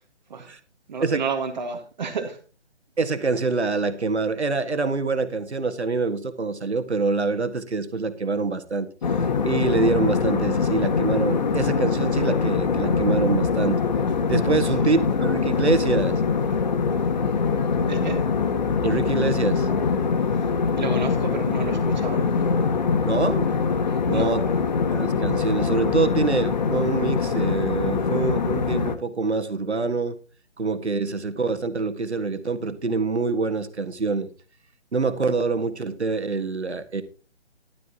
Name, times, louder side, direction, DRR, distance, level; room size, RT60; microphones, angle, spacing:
voice 1, 0.9-2.4 14.8-14.9 17.9-18.2 20.8-22.5 24.1-24.5, right 5 dB, 40° right, 1.8 m, -31 dB
voice 2, 3.0-8.9 9.4-13.8 14.3-16.1 18.8-19.7 23.0-23.5 24.0-24.4 24.9-30.1 30.6-34.3 34.9-37.0, right 4 dB, 70° right, 1.8 m, -25 dB
sound 1, 9.0-28.9, left 5 dB, 40° left, 1.4 m, -23 dB
15.0 x 12.0 x 2.9 m
figure-of-eight pair, 145°, 34 cm